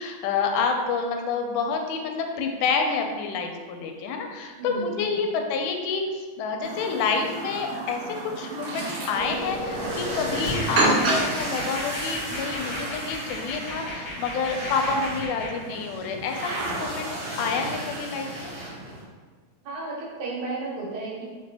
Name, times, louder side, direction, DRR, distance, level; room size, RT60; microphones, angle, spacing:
voice 1, 0.0-17.1 17.4-18.5, left 5 dB, 85° left, 3 dB, 2.0 m, -28 dB
voice 2, 4.6-5.3 19.6-21.3, right 3 dB, 85° right, -5 dB, 2.5 m, -33 dB
Chirp tweet, 6.6-11.7, right 2 dB, 60° right, 2.4 m, -29 dB
sound 1, 9.1-15.6, left 2 dB, 70° left, 1.1 m, -35 dB
sound 2, 9.4-19.0, right 1 dB, 40° right, 0.7 m, -34 dB
5.1 x 2.5 x 3.3 m, 1.5 s
omnidirectional pair, 3.4 m